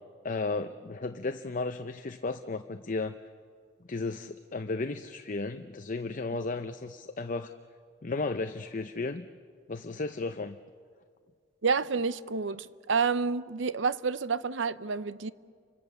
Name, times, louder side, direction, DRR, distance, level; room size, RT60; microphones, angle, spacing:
voice 1, 0.2-3.2 3.9-7.5 8.0-9.3 9.7-10.6, left 3 dB, 40° left, 0.7 m, -34 dB
voice 2, 11.6-15.3, right 5 dB, 70° right, 0.7 m, -29 dB
30.0 x 25.0 x 7.0 m
head